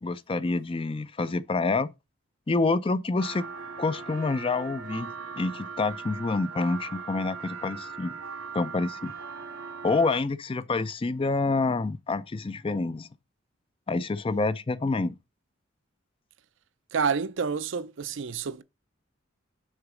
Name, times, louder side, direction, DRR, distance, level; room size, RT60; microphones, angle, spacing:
voice 1, 0.0-1.9 2.5-3.5 3.8-8.1 8.5-9.1 9.8-13.1 13.9-15.2, left 3 dB, 25° left, 0.4 m, -27 dB
sound 1, 3.2-10.2, right 5 dB, 85° right, 1.8 m, -39 dB
voice 2, 16.9-18.6, right 6 dB, 60° right, 0.5 m, -28 dB
6.5 x 3.9 x 6.1 m
head